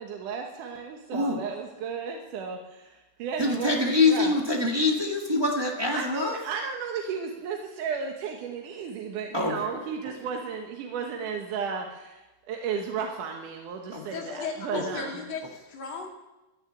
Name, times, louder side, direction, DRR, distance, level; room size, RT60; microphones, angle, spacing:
voice 1, 0.0-2.9 3.2-4.3 5.9-15.2, right 6 dB, 80° right, 2 dB, 2.7 m, -34 dB
voice 2, 1.1-1.4 3.4-6.4 9.3-9.8 13.9-14.0 14.7-15.1, left 3 dB, 25° right, -1 dB, 0.5 m, -25 dB
voice 3, 14.1-16.1, left 5 dB, 55° left, 0 dB, 3.4 m, -36 dB
15.5 x 6.8 x 9.6 m, 1.0 s
omnidirectional pair, 3.6 m